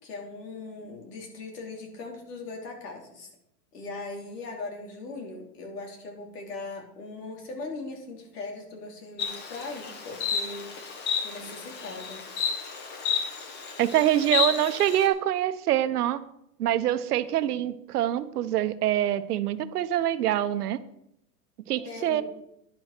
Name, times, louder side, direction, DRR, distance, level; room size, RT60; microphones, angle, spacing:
voice 1, 0.0-3.3 3.7-10.7 11.2-12.2 21.8-22.2, left 3 dB, 80° left, 1 dB, 4.4 m, -39 dB
Insect, 9.2-15.1, left 6 dB, 20° left, 1.4 m, -31 dB
voice 2, 13.8-16.2 16.6-20.8 21.7-22.2, right 12 dB, 75° right, 12 dB, 1.1 m, -25 dB
11.5 x 10.5 x 4.5 m, 0.77 s
supercardioid pair, 155°, 47 cm